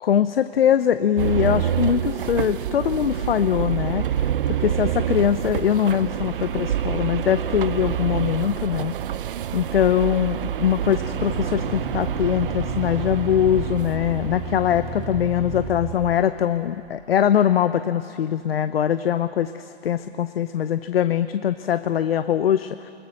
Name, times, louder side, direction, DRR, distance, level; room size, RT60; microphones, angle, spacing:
voice 1, 0.0-9.0 9.5-22.9, left 9 dB, 60° left, 11 dB, 0.8 m, -22 dB
sound 1, 1.2-16.3, right 9 dB, 50° right, 0.8 m, -27 dB
sound 2, 11.0-16.0, right 2 dB, 20° right, 2.5 m, -34 dB
29.0 x 21.5 x 6.6 m, 2.7 s
hypercardioid pair, 145°, 34 cm